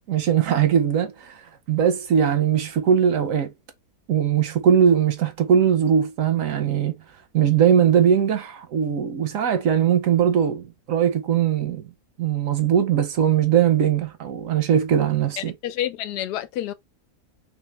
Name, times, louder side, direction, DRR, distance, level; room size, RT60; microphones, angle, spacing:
voice 1, 0.1-1.4 1.7-3.5 4.1-7.0 7.3-11.9 12.2-15.5, right 8 dB, 65° right, 0.9 m, -20 dB
voice 2, 15.4-16.7, left 12 dB, 90° left, 1.2 m, -29 dB
3.3 x 3.0 x 3.2 m
omnidirectional pair, 1.7 m